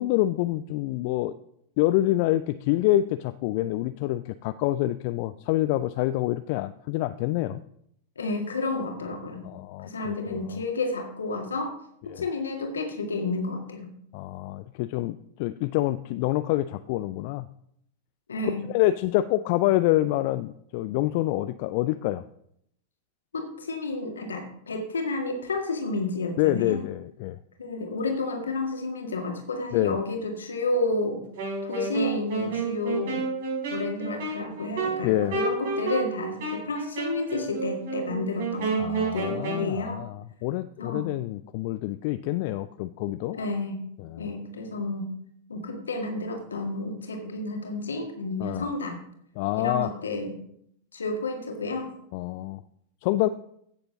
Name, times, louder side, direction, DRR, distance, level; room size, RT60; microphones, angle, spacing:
voice 1, 0.0-1.3 1.8-7.6 9.4-10.4 12.1-12.3 14.1-17.5 18.7-22.2 26.4-27.4 29.7-30.0 35.0-35.4 38.8-43.4 44.0-44.3 48.4-48.7 49.4-49.9 52.1-52.6 53.0-53.3, left 15 dB, 45° left, 13 dB, 0.4 m, -27 dB
voice 2, 8.2-9.4 9.8-11.7 12.1-13.9 18.3-18.6 23.3-26.8 27.6-31.2 31.6-33.2 33.7-40.0 40.8-41.1 43.3-43.8 44.2-45.1 45.5-49.0 49.6-50.3 50.9-51.9, left 2 dB, 70° left, 4 dB, 1.9 m, -30 dB
Wind instrument woodwind instrument, 31.3-39.7, right 4 dB, 55° right, 4.6 m, -31 dB
15.5 x 6.9 x 3.9 m, 0.71 s
figure-of-eight pair, 90°, 0 cm